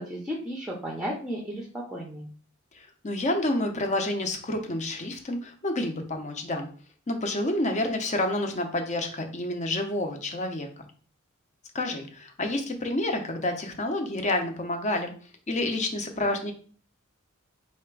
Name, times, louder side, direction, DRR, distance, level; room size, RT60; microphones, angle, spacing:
voice 1, 0.0-2.3, equal, 5° right, -2 dB, 0.6 m, -34 dB
voice 2, 2.7-6.7 7.1-10.9 11.7-15.1 15.5-16.5, left 1 dB, 35° left, 5 dB, 0.7 m, -29 dB
3.3 x 2.8 x 4.5 m, 0.42 s
head